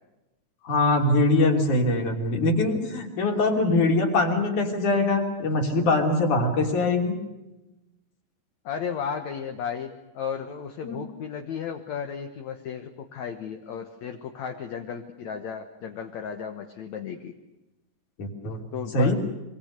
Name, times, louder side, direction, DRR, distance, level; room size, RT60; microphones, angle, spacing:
voice 1, 0.6-7.2 10.8-11.0 18.2-18.6 18.9-19.1, left 2 dB, 45° left, 3 dB, 4.3 m, -23 dB
voice 2, 8.6-17.3 18.7-19.1, left 7 dB, 65° left, 6 dB, 1.8 m, -34 dB
26.0 x 24.5 x 6.6 m, 1.0 s
omnidirectional pair, 5.1 m